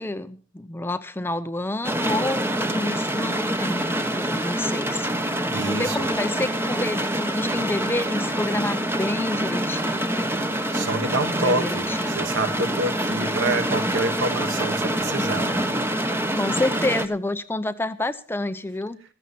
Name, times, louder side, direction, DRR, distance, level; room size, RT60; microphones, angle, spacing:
voice 1, 0.0-5.1 5.6-10.3 11.3-12.3 16.3-19.0, left 2 dB, 10° left, 0.7 m, -29 dB
sound 1, 1.8-17.1, right 1 dB, 10° right, 1.1 m, -26 dB
voice 2, 5.5-6.1 10.7-15.7, right 2 dB, 60° right, 1.7 m, -27 dB
15.5 x 14.5 x 4.2 m
head